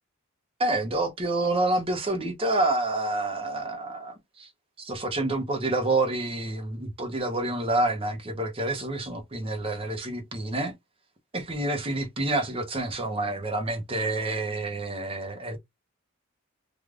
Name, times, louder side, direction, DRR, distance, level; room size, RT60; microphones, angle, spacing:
voice 1, 0.6-4.5 4.8-10.7 11.3-15.6, right 2 dB, 25° right, 0.6 m, -28 dB
3.2 x 2.3 x 2.4 m
head